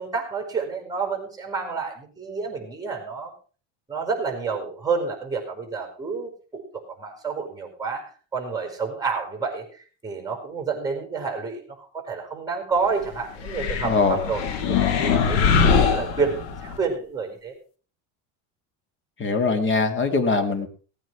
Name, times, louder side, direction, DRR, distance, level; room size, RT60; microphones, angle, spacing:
voice 1, 0.0-3.3 3.9-6.6 7.0-11.6 11.9-17.5, right 5 dB, 10° right, 3 dB, 5.3 m, -29 dB
sound 1, 13.4-16.8, left 6 dB, 85° left, 2.6 m, -22 dB
voice 2, 13.8-14.2 19.2-20.7, left 4 dB, 35° left, 7 dB, 2.5 m, -22 dB
18.5 x 9.3 x 4.8 m, 0.39 s
cardioid pair, 135°, 36 cm